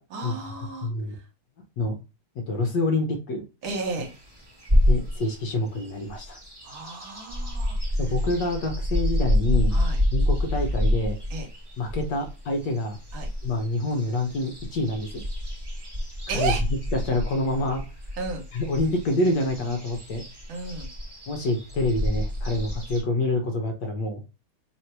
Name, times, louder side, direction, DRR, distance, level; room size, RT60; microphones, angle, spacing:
voice 1, 0.1-0.9 3.6-4.1 6.6-7.8 9.7-10.0 11.3-11.5 13.1-13.3 16.3-16.6 18.2-18.4 20.5-20.9, right 4 dB, 70° right, 3 dB, 1.6 m, -32 dB
voice 2, 0.8-1.1 1.8-2.0 2.5-3.4 4.8-6.4 8.0-9.8 10.1-11.2 11.8-13.0 13.4-15.2 16.3-16.5 16.9-17.8 18.5-20.2 21.3-24.2, left 2 dB, 65° left, 3 dB, 1.3 m, -27 dB
sound 1, 3.7-5.3 5.8-23.0, left 1 dB, 20° right, 0.7 m, -27 dB
3.5 x 2.6 x 4.3 m, 0.30 s
omnidirectional pair, 2.4 m